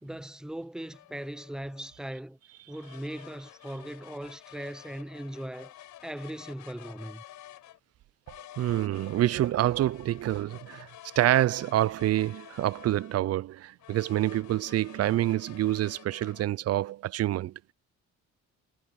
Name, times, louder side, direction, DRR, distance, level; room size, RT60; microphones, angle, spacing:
voice 1, 0.0-2.4 2.7-5.7 6.0-7.2, right 1 dB, ahead, 0.7 m, -39 dB
sound 1, 0.8-2.0 2.7-7.8 8.3-13.3 13.8-16.5, left 14 dB, 85° left, 5.8 m, -50 dB
voice 2, 8.6-10.9 11.2-17.5, right 14 dB, 55° right, 0.4 m, -27 dB
cardioid pair, 90°, 30 cm